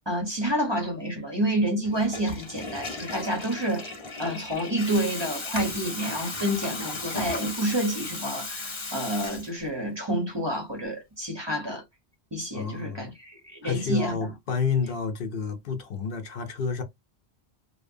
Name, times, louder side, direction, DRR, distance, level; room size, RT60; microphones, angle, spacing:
voice 1, 0.1-11.8 12.3-14.3, right 1 dB, 30° right, 0.7 m, -29 dB
Water tap faucet / Toilet flush, 1.8-9.9, left 3 dB, 30° left, 0.7 m, -35 dB
voice 2, 12.5-13.1 13.6-16.8, left 5 dB, 65° left, 0.7 m, -29 dB
2.7 x 2.1 x 2.5 m
omnidirectional pair, 1.0 m